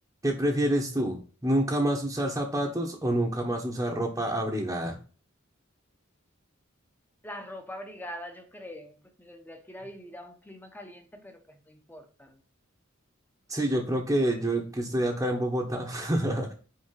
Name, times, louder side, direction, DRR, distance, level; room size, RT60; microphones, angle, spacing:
voice 1, 0.2-5.0 13.5-16.5, right 1 dB, 15° right, 1.1 m, -27 dB
voice 2, 7.2-12.4, equal, 10° left, 1.1 m, -43 dB
5.7 x 4.4 x 5.8 m
head